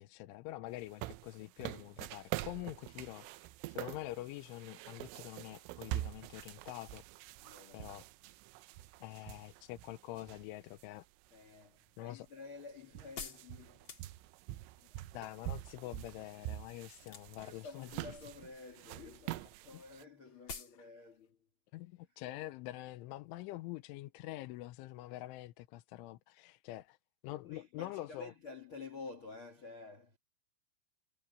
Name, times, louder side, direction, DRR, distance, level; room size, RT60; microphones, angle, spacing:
voice 1, 0.0-7.0 7.7-8.0 9.0-11.1 12.0-12.3 15.0-18.2 19.7-19.8 21.7-27.0 27.2-28.3, left 16 dB, 85° left, 3.3 m, -46 dB
sound 1, 0.8-10.8 11.3-11.4 12.3-12.4 12.6-20.0, right 16 dB, 90° right, 3.3 m, -45 dB
voice 2, 7.4-8.0 11.3-14.3 17.0-21.5 27.4-30.2, left 4 dB, 60° left, 1.3 m, -51 dB
sound 2, 11.5-14.6 17.0-17.6 17.9-18.5 18.8-18.9 19.2-19.3 19.5-19.6 19.9-20.0 20.5-20.8 21.1-21.2, left 5 dB, 35° left, 2.3 m, -48 dB
omnidirectional pair, 5.6 m